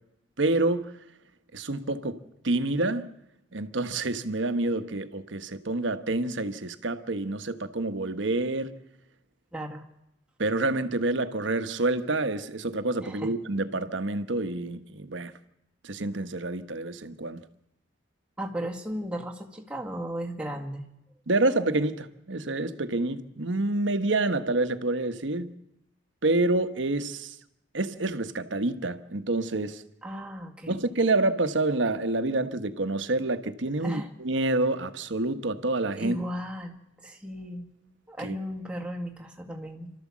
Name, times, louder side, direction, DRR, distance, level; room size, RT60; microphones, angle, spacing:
voice 1, 0.4-0.9 1.5-3.1 3.5-8.8 10.4-15.3 15.8-17.4 21.3-25.5 26.2-27.4 27.7-29.8 30.7-36.2 38.2-38.4, right 2 dB, 75° right, 1.1 m, -28 dB
voice 2, 9.5-9.8 13.0-13.3 18.4-20.8 30.0-30.7 33.8-34.1 36.0-36.8 37.0-37.7 38.1-39.9, equal, 5° right, 1.9 m, -35 dB
28.0 x 13.0 x 7.4 m
head